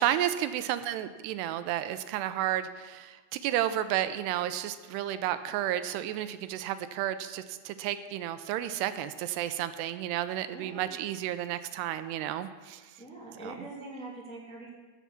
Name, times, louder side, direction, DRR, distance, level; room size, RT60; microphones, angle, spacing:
voice 1, 0.0-12.8 13.4-13.5, right 12 dB, 85° right, 11 dB, 2.7 m, -32 dB
voice 2, 10.5-11.0 13.0-14.7, right 2 dB, ahead, -5 dB, 1.6 m, -43 dB
15.0 x 7.3 x 7.0 m, 1.4 s
omnidirectional pair, 4.8 m